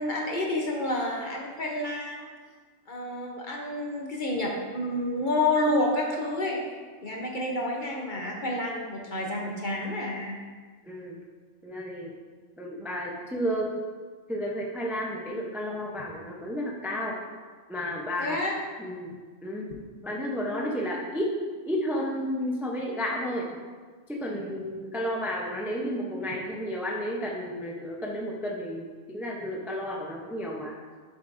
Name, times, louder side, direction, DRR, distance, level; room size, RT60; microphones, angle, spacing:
voice 1, 0.0-2.3 2.9-6.6 7.0-10.4 18.2-18.6, left 1 dB, 40° left, -1 dB, 0.9 m, -29 dB
voice 2, 10.8-11.2 11.6-12.1 12.6-13.8 14.3-17.2 17.7-18.4 18.8-19.1 19.4-19.7 20.0-21.4 21.6-23.5 24.1-30.7, equal, ahead, -2 dB, 0.5 m, -32 dB
7.5 x 7.3 x 2.6 m, 1.5 s
omnidirectional pair, 1.4 m